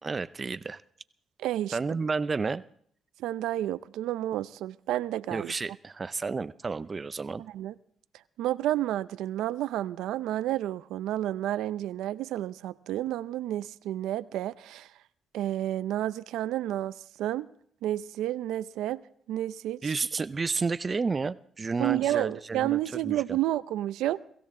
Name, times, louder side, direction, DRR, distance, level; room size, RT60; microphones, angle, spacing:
voice 1, 0.0-0.8 1.7-2.6 5.3-7.4 19.8-22.8 23.0-23.4, right 4 dB, 30° right, 15 dB, 0.5 m, -31 dB
voice 2, 1.4-1.8 3.2-5.5 7.4-7.7 8.4-14.9 15.3-17.5 17.8-19.0 19.3-19.9 21.8-24.2, right 13 dB, 90° right, 14 dB, 0.5 m, -30 dB
23.5 x 15.5 x 3.7 m, 0.62 s
cardioid pair, 90°, 0 cm